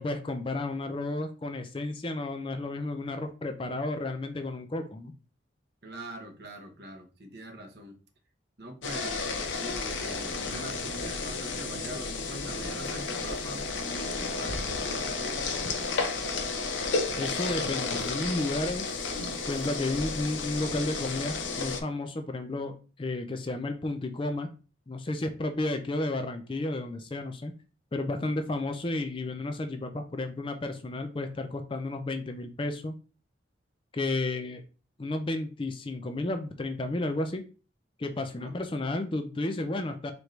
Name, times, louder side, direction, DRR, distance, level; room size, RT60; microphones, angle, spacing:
voice 1, 0.0-5.1 17.2-19.1 19.5-24.5 24.9-27.5 27.9-32.9 33.9-34.6 35.0-37.4 38.0-40.1, left 2 dB, 25° left, 6 dB, 0.4 m, -32 dB
voice 2, 5.8-8.0 8.6-9.2 9.6-15.5 38.3-38.5, right 1 dB, 55° right, 3 dB, 0.9 m, -43 dB
sound 1, 8.8-21.8, left 3 dB, 80° left, 0.6 m, -32 dB
4.5 x 2.6 x 3.2 m, 0.34 s
head